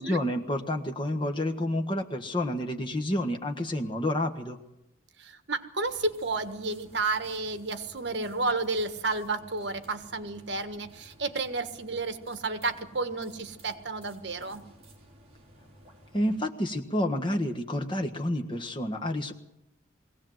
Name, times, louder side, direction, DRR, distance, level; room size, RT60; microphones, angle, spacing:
voice 1, 0.0-4.6 16.1-19.3, left 1 dB, 25° left, 3 dB, 1.5 m, -29 dB
voice 2, 5.2-14.6, right 3 dB, 60° right, 9 dB, 1.5 m, -31 dB
sound 1, 5.8-16.4, right 1 dB, 30° right, 4.3 m, -55 dB
22.0 x 17.0 x 7.9 m, 0.87 s
head